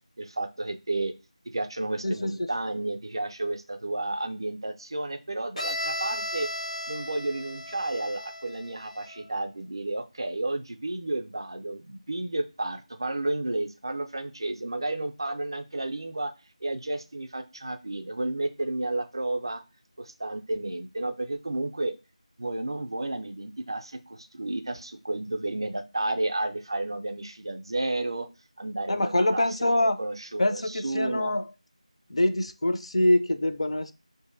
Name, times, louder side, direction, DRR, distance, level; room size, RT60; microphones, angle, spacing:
voice 1, 0.2-1.1 1.5-6.5 6.9-16.3 16.6-19.6 20.0-21.9 22.4-28.3 28.6-31.3, right 2 dB, 40° right, 7 dB, 0.4 m, -32 dB
voice 2, 2.0-2.5 28.9-30.0 30.4-31.5 32.1-33.9, left 1 dB, 55° left, 9 dB, 0.4 m, -25 dB
Bowed string instrument, 5.6-9.3, left 1 dB, 85° left, 0.8 m, -35 dB
4.6 x 2.6 x 2.4 m, 0.28 s
figure-of-eight pair, 175°, 4 cm